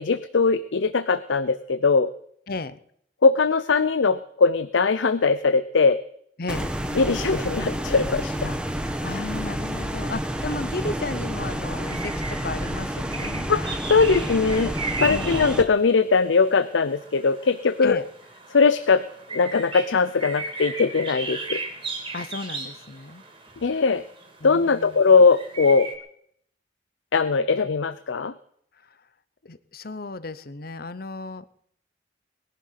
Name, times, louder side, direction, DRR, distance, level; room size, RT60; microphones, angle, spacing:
voice 1, 0.0-2.1 3.2-6.0 7.0-8.6 13.5-18.0 18.5-19.0 19.3-21.6 23.6-24.0 24.4-25.9 27.1-28.3, left 4 dB, 80° left, 14 dB, 0.6 m, -20 dB
voice 2, 2.5-2.8 6.4-6.7 9.0-13.5 15.1-15.4 17.8-18.0 22.1-23.2 24.4-25.0 28.8-29.0 29.4-31.4, left 3 dB, 50° left, 15 dB, 0.8 m, -34 dB
sound 1, 6.5-15.6, equal, 5° right, 1.2 m, -29 dB
sound 2, 10.4-26.0, right 3 dB, 25° right, 2.6 m, -37 dB
20.5 x 11.5 x 5.8 m, 0.67 s
head